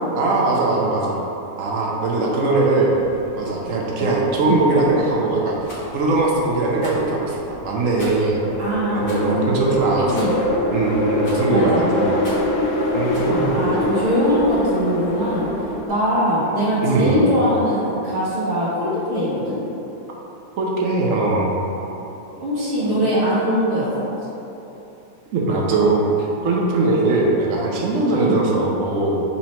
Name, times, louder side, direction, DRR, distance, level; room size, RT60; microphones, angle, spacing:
voice 1, 0.1-1.2 1.6-2.9 3.4-5.6 5.9-8.4 8.9-10.1 10.7-12.2 12.9-13.6 16.8-17.3 20.6-21.5 22.8-23.0 25.3-29.2, right 2 dB, 65° right, -3 dB, 0.8 m, -20 dB
sound 1, 2.9-15.9, left 1 dB, 90° left, 1.3 m, -26 dB
Rattle, 5.6-5.9 6.8-7.1 8.0-8.3 9.0-9.3 10.1-10.5 11.2-11.6 12.2-12.5 13.1-13.3, equal, 65° left, 1.6 m, -38 dB
voice 2, 8.6-9.5 10.1-10.3 11.4-12.1 13.2-15.5 15.9-19.6 22.4-23.8 28.1-28.4, equal, 40° right, -11 dB, 1.7 m, -21 dB
4.2 x 2.8 x 4.3 m, 3.0 s
omnidirectional pair, 1.8 m